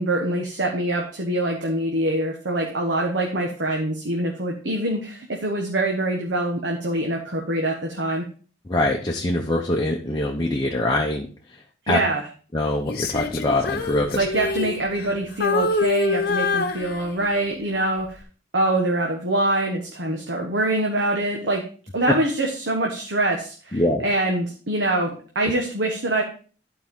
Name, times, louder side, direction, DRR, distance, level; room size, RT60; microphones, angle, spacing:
voice 1, 0.0-8.3 11.9-12.2 14.1-18.2 18.5-21.6 21.9-26.2, right 1 dB, 80° right, 0 dB, 1.3 m, -24 dB
voice 2, 8.7-12.0 12.5-14.2 23.7-24.0, left 1 dB, 20° left, -1 dB, 0.8 m, -24 dB
Female singing, 12.9-15.2 15.4-17.5 18.0-18.2, left 3 dB, 55° left, 0.9 m, -25 dB
11.5 x 4.7 x 3.7 m, 0.40 s
head